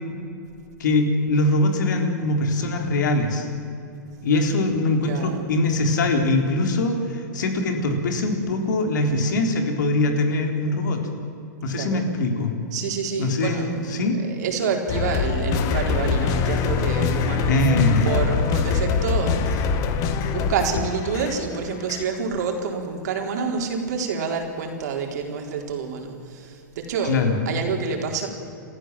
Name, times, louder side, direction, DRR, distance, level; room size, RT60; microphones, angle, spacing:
voice 1, 0.8-3.5 4.2-11.0 11.6-12.5 13.2-14.2 17.5-18.1 27.1-27.3, left 2 dB, 75° left, 4 dB, 3.9 m, -22 dB
voice 2, 4.9-5.5 11.7-12.1 12.7-19.7 20.1-28.3, right 5 dB, 60° right, 2 dB, 4.2 m, -28 dB
sound 1, 14.9-22.0, left 6 dB, 35° left, 1.7 m, -24 dB
29.5 x 14.0 x 7.6 m, 2.7 s
hypercardioid pair, 135°, 10 cm